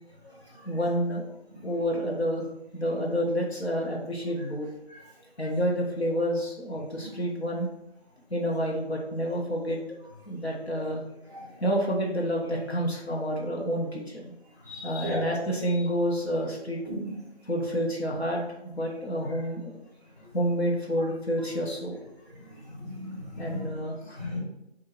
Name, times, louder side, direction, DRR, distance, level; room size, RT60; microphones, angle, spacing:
voice 1, 0.6-1.2 1.6-4.7 5.4-7.7 8.3-9.8 10.3-11.1 11.6-14.3 14.8-16.8 17.4-19.7 20.3-22.0 23.4-24.2, equal, 75° left, -2 dB, 1.3 m, -29 dB
voice 2, 14.7-15.3 16.8-17.1 22.6-23.7 24.1-24.4, left 1 dB, 15° left, -10 dB, 1.6 m, -36 dB
3.8 x 2.7 x 4.5 m, 0.86 s
figure-of-eight pair, 180°, 32 cm